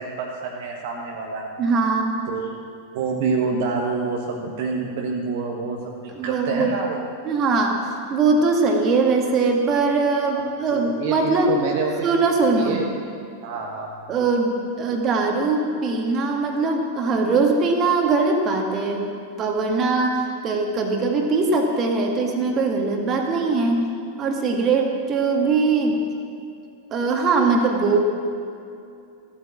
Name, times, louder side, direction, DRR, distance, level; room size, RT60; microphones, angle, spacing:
voice 1, 0.0-1.5 2.3-2.5 2.9-7.1 10.3-12.1 12.5-12.9 13.4-13.9, right 4 dB, 50° right, 0 dB, 1.4 m, -27 dB
voice 2, 1.6-2.2 6.2-6.7 7.2-11.5 12.0-12.8 14.1-23.8 24.2-26.0 26.9-28.0, right 3 dB, 30° right, 2 dB, 2.0 m, -21 dB
15.5 x 8.8 x 7.5 m, 2.5 s
figure-of-eight pair, 90°, 0 cm